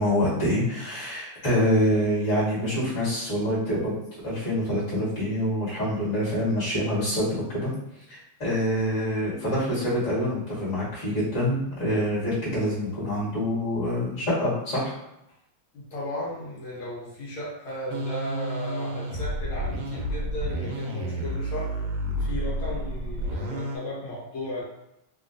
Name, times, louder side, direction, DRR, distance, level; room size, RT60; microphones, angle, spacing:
voice 1, 0.0-7.7 8.1-14.9, equal, 35° left, -8 dB, 1.7 m, -26 dB
voice 2, 15.7-21.8 22.2-24.6, left 1 dB, 80° left, -6 dB, 1.7 m, -35 dB
sound 1, 17.9-23.8, equal, 70° right, 1.1 m, -30 dB
3.7 x 2.5 x 2.5 m, 0.85 s
omnidirectional pair, 2.3 m